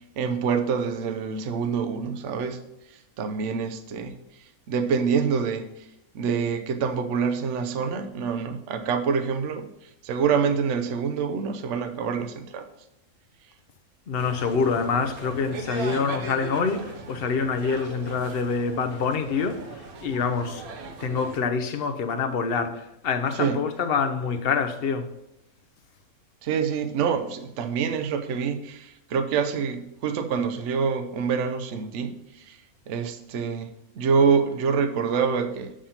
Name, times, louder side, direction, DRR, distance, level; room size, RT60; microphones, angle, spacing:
voice 1, 0.2-2.6 2.9-5.9 6.1-12.7 23.3-23.6 26.4-32.6 32.9-35.7, right 6 dB, 60° right, 1.0 m, -26 dB
voice 2, 14.1-19.6 20.0-20.6 21.0-25.1, left 5 dB, 50° left, 0.8 m, -26 dB
sound 1, 14.2-21.4, right 3 dB, 80° right, 1.5 m, -39 dB
7.2 x 5.0 x 5.5 m
omnidirectional pair, 1.5 m